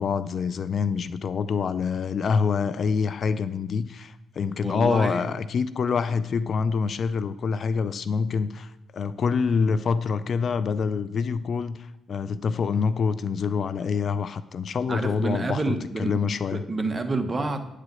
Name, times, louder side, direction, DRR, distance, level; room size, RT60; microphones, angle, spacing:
voice 1, 0.0-16.6, left 5 dB, 50° left, 14 dB, 0.4 m, -26 dB
voice 2, 4.6-5.3 14.9-16.1 16.5-17.7, right 3 dB, 30° right, 7 dB, 1.1 m, -28 dB
9.3 x 5.0 x 7.7 m, 0.90 s
cardioid pair, 90°, 0 cm